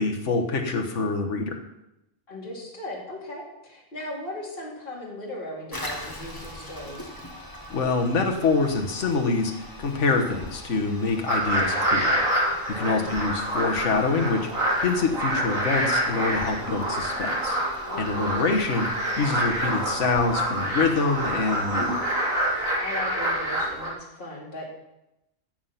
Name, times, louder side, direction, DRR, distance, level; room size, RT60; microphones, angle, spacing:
voice 1, 0.0-1.6 7.7-9.5 9.8-12.2 12.7-17.6 18.0-18.9 19.2-21.9, left 3 dB, 60° left, 2 dB, 1.7 m, -25 dB
voice 2, 2.3-7.1 12.7-13.1 17.9-18.3 22.8-24.8, left 1 dB, 40° left, -4 dB, 3.0 m, -37 dB
Toilet flush, 5.7-22.7, left 1 dB, 15° left, 1.5 m, -42 dB
sound 1, 11.3-23.9, right 1 dB, 75° right, 3.3 m, -27 dB
15.5 x 7.7 x 5.8 m, 0.90 s
omnidirectional pair, 1.4 m